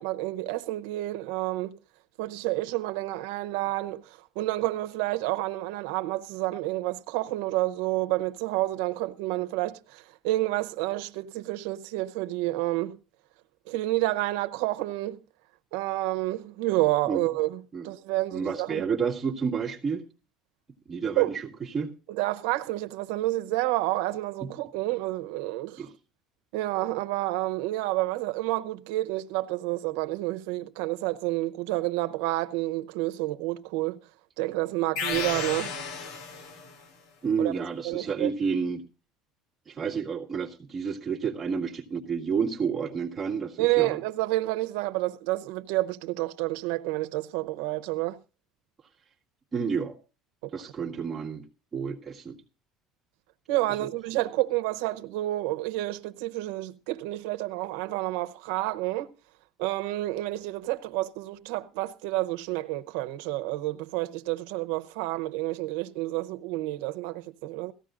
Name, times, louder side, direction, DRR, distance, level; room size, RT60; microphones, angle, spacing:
voice 1, 0.0-1.8 2.2-13.0 13.7-15.2 15.7-18.9 21.2-21.4 22.1-25.9 26.5-34.0 34.4-35.7 37.4-37.5 37.8-38.3 43.6-48.2 53.5-59.1 59.6-67.7, right 18 dB, 85° right, 0.7 m, -29 dB
voice 2, 18.3-20.0 20.9-21.5 21.7-21.9 24.4-24.5 25.8-25.9 37.2-38.8 39.7-44.0 49.5-50.0 50.5-51.4 51.7-52.4 53.8-53.9, right 6 dB, 15° right, 1.7 m, -30 dB
sound 1, 35.0-36.8, left 5 dB, 65° left, 2.3 m, -33 dB
18.0 x 14.5 x 2.4 m
cardioid pair, 175°, 0 cm